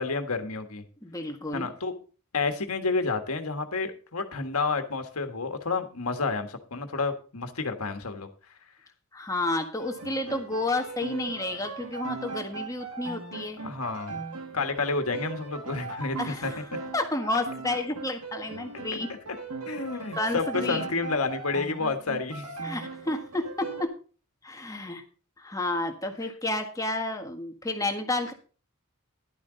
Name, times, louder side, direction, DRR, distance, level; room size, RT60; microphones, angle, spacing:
voice 1, 0.0-0.8 1.5-1.9 2.3-8.3 13.6-14.2 14.5-16.2 16.4-16.5 18.9-19.0 19.7-22.5, left 4 dB, 85° left, 7 dB, 1.5 m, -30 dB
voice 2, 1.0-1.7 9.1-13.6 16.2-19.1 20.2-21.0 22.6-23.9 24.4-25.0 25.4-28.3, left 2 dB, 15° left, 4 dB, 1.5 m, -31 dB
sound 1, 9.8-23.9, right 4 dB, 85° right, 1.7 m, -39 dB
11.5 x 10.0 x 3.9 m, 0.37 s
head